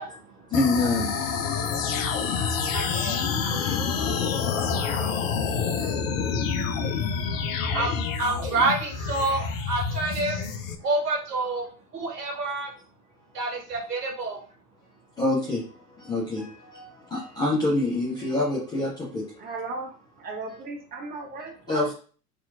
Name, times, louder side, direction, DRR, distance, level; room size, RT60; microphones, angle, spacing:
voice 1, 0.0-0.5 1.6-6.0 6.5-10.5 10.8-12.7 13.3-14.4, right 2 dB, 80° right, 0 dB, 1.0 m, -31 dB
sound 1, 0.5-10.8, left 6 dB, 60° left, 0.5 m, -27 dB
voice 2, 0.5-2.0 2.3-3.0 3.5-3.8 4.6-5.4 5.8-5.9 7.7-7.8 15.2-19.4 21.7-21.9, left 2 dB, 10° left, -6 dB, 0.3 m, -28 dB
voice 3, 19.4-21.9, right 3 dB, 20° right, 1 dB, 0.7 m, -36 dB
2.7 x 2.5 x 2.3 m, 0.41 s
figure-of-eight pair, 80°, 47 cm